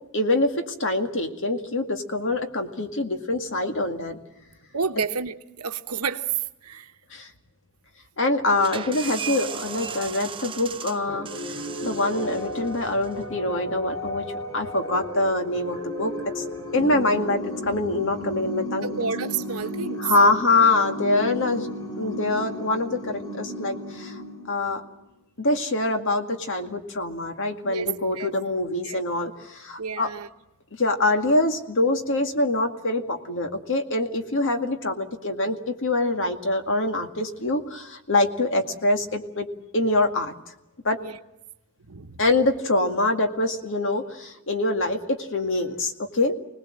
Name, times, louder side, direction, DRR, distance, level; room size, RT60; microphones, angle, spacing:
voice 1, 0.1-4.2 7.1-7.3 8.2-11.3 11.8-14.3 14.5-16.4 16.7-18.9 20.0-21.7 22.0-24.2 24.5-24.8 25.4-30.1 30.8-39.5 39.7-40.3 40.8-41.0 42.2-46.3, left 2 dB, 60° left, 2.1 m, -24 dB
voice 2, 4.7-6.9 18.8-20.0 21.2-21.3 27.6-27.9 28.1-28.3 28.8-29.0 29.8-30.3 41.0-41.2 41.9-42.2, right 6 dB, 80° right, 1.0 m, -30 dB
sound 1, 8.6-14.0, right 6 dB, 25° right, 0.8 m, -37 dB
sound 2, 11.1-24.8, equal, 20° left, 5.2 m, -34 dB
25.5 x 19.0 x 7.7 m
head